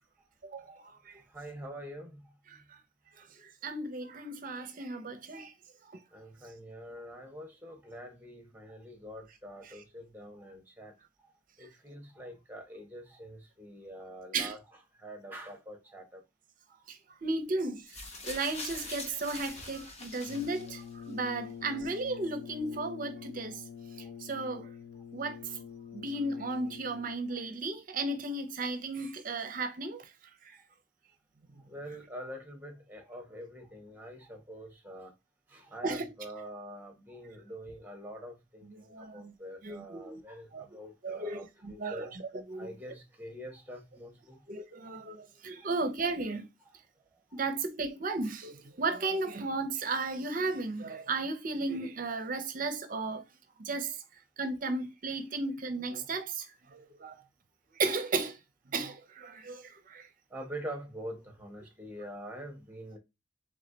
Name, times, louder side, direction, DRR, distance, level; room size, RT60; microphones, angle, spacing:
voice 1, 0.4-1.2 2.5-2.8 3.2-5.5 5.9-6.0 14.3-14.5 16.9-18.0 18.2-23.6 24.2-24.7 25.1-25.6 25.9-30.0 30.4-30.6 35.8-36.1 38.7-39.3 39.6-40.2 40.5-40.6 41.0-42.2 42.5-42.7 44.5-46.5 47.3-53.2 53.6-54.0 54.4-56.5 56.7-57.2 57.7-58.4 58.7-60.0, right 3 dB, 45° right, 0.6 m, -35 dB
voice 2, 1.3-2.2 6.1-10.9 11.6-14.6 15.0-16.2 31.7-35.1 35.5-42.1 42.6-44.4 45.6-45.7 46.6-46.8 47.3-47.4 60.3-63.0, equal, 10° right, 1.2 m, -45 dB
sound 1, 17.9-21.1 22.0-22.1, left 2 dB, 35° left, 1.0 m, -43 dB
Brass instrument, 20.2-27.4, left 7 dB, 50° left, 0.4 m, -46 dB
3.5 x 3.2 x 3.8 m
head